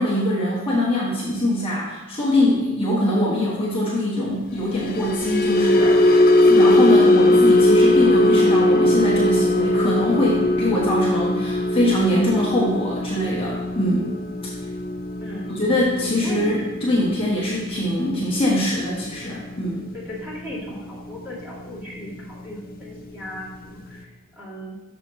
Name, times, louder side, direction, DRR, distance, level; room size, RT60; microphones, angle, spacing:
voice 1, 0.0-6.2 6.5-14.1 15.5-19.8, left 1 dB, 25° left, -7 dB, 1.2 m, -23 dB
sound 1, 4.7-21.1 21.4-21.7 22.1-22.3, left 1 dB, 40° left, 0.5 m, -20 dB
voice 2, 15.2-15.6 16.2-16.5 20.0-24.1 24.4-24.8, equal, 10° right, -9 dB, 2.1 m, -36 dB
7.0 x 5.7 x 3.6 m, 1.1 s
head